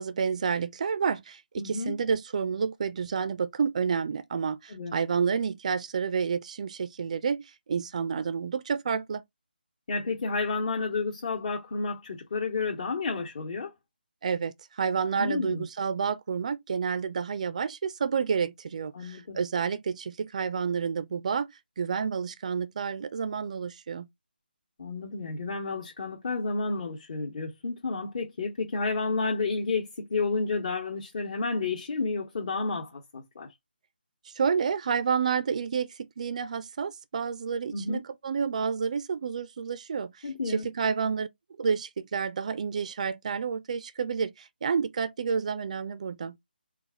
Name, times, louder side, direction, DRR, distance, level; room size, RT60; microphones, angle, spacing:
voice 1, 0.0-9.2 14.2-24.1 34.3-41.3 41.6-46.4, right 6 dB, 40° right, 0.4 m, -30 dB
voice 2, 1.6-2.0 4.7-4.9 9.9-13.7 15.2-15.6 18.9-19.4 24.8-33.5 37.7-38.0 40.2-40.7, left 4 dB, 45° left, 1.1 m, -31 dB
4.0 x 2.4 x 3.6 m
figure-of-eight pair, 155°, 6 cm